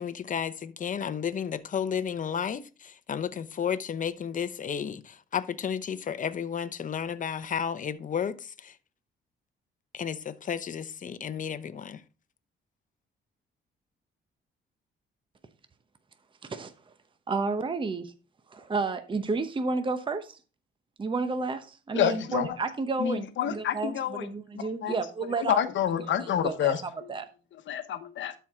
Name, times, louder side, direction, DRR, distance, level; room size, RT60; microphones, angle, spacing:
voice 1, 0.0-8.8 9.9-12.0, left 7 dB, 40° left, 0.7 m, -32 dB
voice 2, 16.4-16.7 17.3-18.1 18.5-20.4 21.0-25.6 26.0-26.7 27.1-27.3, right 3 dB, 25° right, 0.8 m, -31 dB
voice 3, 21.9-22.6 23.0-25.0 25.5-27.1 27.7-28.3, left 9 dB, 70° left, 1.0 m, -28 dB
12.0 x 4.6 x 3.6 m
cardioid pair, 90°, 20 cm